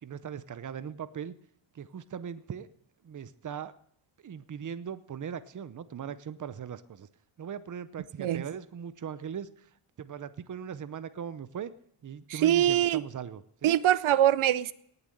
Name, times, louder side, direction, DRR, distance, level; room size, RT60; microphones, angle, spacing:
voice 1, 0.0-1.3 1.7-2.7 3.0-3.7 4.2-7.1 7.4-9.7 10.0-11.7 12.0-13.8, right 8 dB, 40° right, 14 dB, 0.7 m, -39 dB
voice 2, 12.3-13.0 13.6-14.7, right 11 dB, 85° right, 17 dB, 0.6 m, -23 dB
18.0 x 6.9 x 7.7 m, 0.70 s
wide cardioid pair, 170°, 47 cm